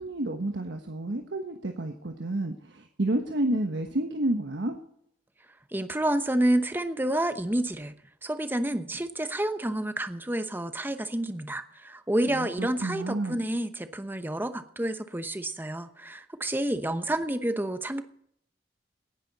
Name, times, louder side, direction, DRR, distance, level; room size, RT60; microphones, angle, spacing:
voice 1, 0.0-4.8 12.2-13.4, right 1 dB, 80° right, 4 dB, 1.2 m, -30 dB
voice 2, 5.7-7.9 8.2-18.0, right 1 dB, 10° right, 10 dB, 0.8 m, -29 dB
18.5 x 10.5 x 4.1 m, 0.71 s
head